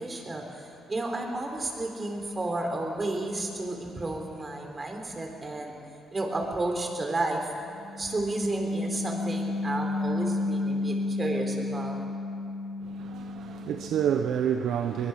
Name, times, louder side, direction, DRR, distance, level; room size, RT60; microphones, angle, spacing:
voice 1, 0.0-5.7 6.1-7.5 8.0-12.0, right 2 dB, 30° right, 3.9 m, -32 dB
sound 1, 7.6-14.2, left 2 dB, 70° left, 4.1 m, -32 dB
voice 2, 12.8-15.1, right 8 dB, 75° right, 0.8 m, -28 dB
22.0 x 20.5 x 6.4 m
cardioid pair, 90°, 0 cm